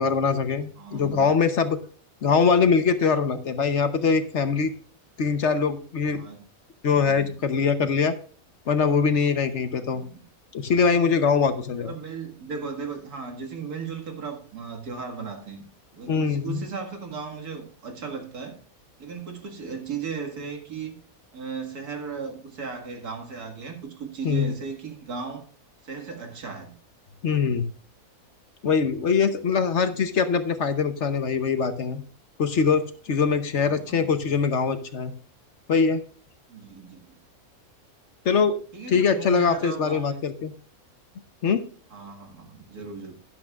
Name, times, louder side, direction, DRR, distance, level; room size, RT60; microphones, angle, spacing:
voice 1, 0.0-1.8 2.2-4.7 5.2-6.2 6.8-8.2 8.7-10.0 10.5-11.9 16.1-16.6 24.2-24.5 27.2-27.7 28.6-32.0 32.4-35.1 35.7-36.0 38.2-38.6 38.9-40.5 41.4-41.6, left 5 dB, 55° left, 1.1 m, -23 dB
voice 2, 0.8-1.3 6.1-6.4 7.1-7.5 9.9-10.2 11.8-15.6 15.9-18.6 19.0-21.0 21.3-25.5 25.8-26.8 33.6-34.1 36.5-37.2 38.7-40.2 41.9-43.2, right 5 dB, 80° right, 2.4 m, -36 dB
12.0 x 10.5 x 2.4 m
omnidirectional pair, 1.6 m